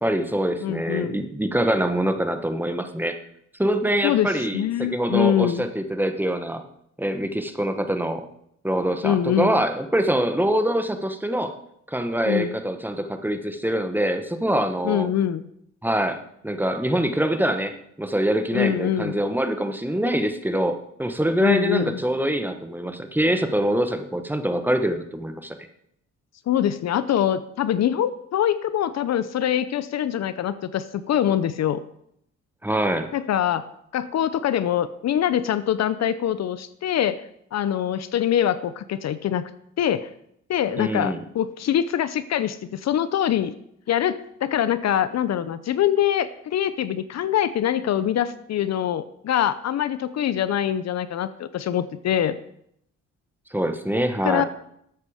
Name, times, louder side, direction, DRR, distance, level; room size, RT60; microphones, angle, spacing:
voice 1, 0.0-3.1 3.6-6.6 7.0-8.3 8.6-11.5 11.9-15.1 15.8-16.2 16.4-25.5 32.6-33.1 40.8-41.2 53.5-54.4, right 1 dB, 5° right, 7 dB, 1.2 m, -24 dB
voice 2, 0.6-1.2 4.0-5.7 9.0-9.6 12.3-12.5 14.8-15.4 18.5-19.1 21.4-22.0 26.5-31.8 33.1-33.6 33.9-37.2 37.5-39.5 39.8-40.1 40.5-43.5 43.9-52.4 54.2-54.4, left 10 dB, 60° left, 14 dB, 0.7 m, -24 dB
12.5 x 8.2 x 5.0 m, 0.74 s
cardioid pair, 90°, 30 cm